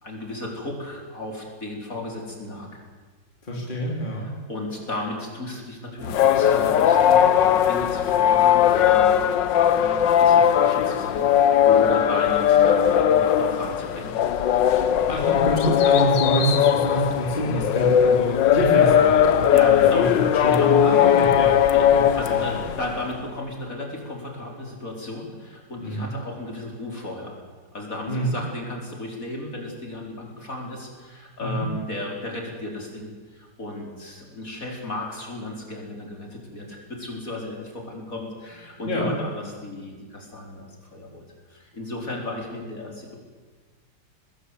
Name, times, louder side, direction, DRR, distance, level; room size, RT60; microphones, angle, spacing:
voice 1, 0.0-2.8 4.1-14.2 19.5-20.1 20.5-20.7 21.7-21.9 22.1-27.4 27.7-43.1, left 1 dB, 50° left, 0 dB, 4.9 m, -34 dB
voice 2, 3.4-4.3 14.6-21.6 21.9-22.6 25.8-26.1 28.1-28.3 31.4-31.7 38.9-39.1, equal, 25° left, -2 dB, 3.5 m, -27 dB
sound 1, 6.0-23.0, left 9 dB, 85° left, 1.7 m, -19 dB
24.0 x 20.0 x 8.3 m, 1.4 s
omnidirectional pair, 1.9 m